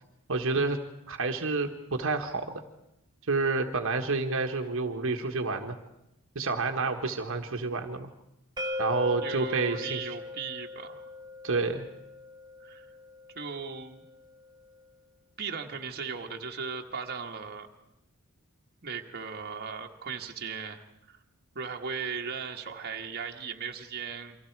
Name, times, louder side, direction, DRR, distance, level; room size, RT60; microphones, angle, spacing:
voice 1, 0.3-0.8 1.1-2.6 3.3-5.8 6.3-8.1 8.8-10.2 11.4-11.9, right 3 dB, 60° right, 4 dB, 1.4 m, -29 dB
sound 1, 8.6-14.4, left 3 dB, 20° right, 1.3 m, -39 dB
voice 2, 9.1-11.1 12.6-12.9 13.3-14.1 15.4-17.7 18.8-21.2 21.5-24.4, right 5 dB, 45° right, 2 dB, 1.5 m, -37 dB
29.0 x 24.0 x 4.7 m, 0.86 s
head